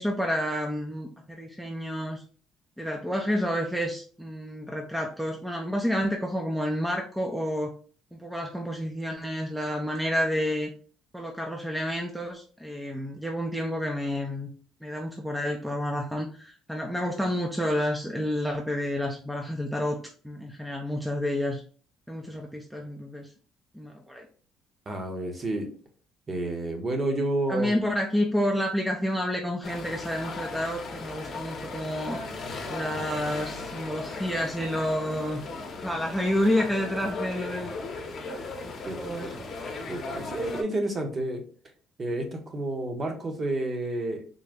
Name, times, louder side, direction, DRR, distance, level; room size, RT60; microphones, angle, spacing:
voice 1, 0.0-2.2 2.8-7.7 8.1-10.7 11.1-14.5 14.8-20.0 20.2-21.6 22.1-23.3 23.7-24.3 27.5-32.2 32.7-35.4 35.8-37.7 38.6-39.5, equal, ahead, 1 dB, 0.5 m, -29 dB
voice 2, 24.9-25.7 26.3-27.8 38.8-39.3 39.9-41.4 42.0-44.2, right 1 dB, 30° right, 3 dB, 0.9 m, -30 dB
sound 1, 29.6-40.6, left 3 dB, 45° left, 0.8 m, -37 dB
3.8 x 2.1 x 3.4 m, 0.42 s
cardioid pair, 115°, 0 cm